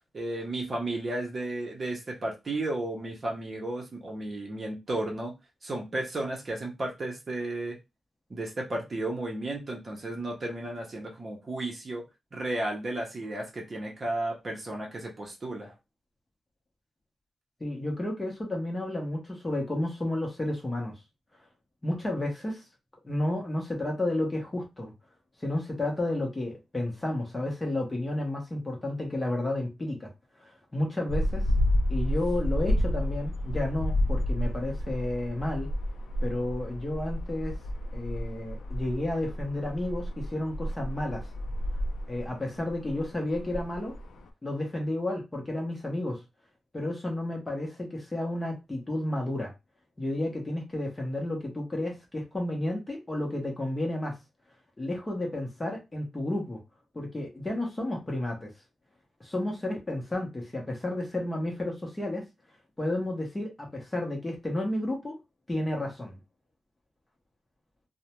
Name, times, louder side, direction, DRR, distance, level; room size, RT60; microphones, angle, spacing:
voice 1, 0.1-5.3 5.6-7.8 8.3-12.0 12.3-15.7, right 2 dB, 35° right, 0.7 m, -33 dB
voice 2, 17.6-20.9 21.8-22.6 23.0-24.9 25.4-30.1 30.4-31.5 31.9-35.7 36.2-37.6 37.9-41.3 42.1-44.0 44.4-46.2 46.7-49.5 50.0-54.2 54.8-56.6 56.9-58.5 59.2-62.2 62.8-65.2 65.5-66.2, left 1 dB, 15° left, 0.7 m, -31 dB
sound 1, 31.1-44.3, left 1 dB, 75° left, 0.4 m, -31 dB
2.4 x 2.1 x 2.9 m
wide cardioid pair, 145°, 0 cm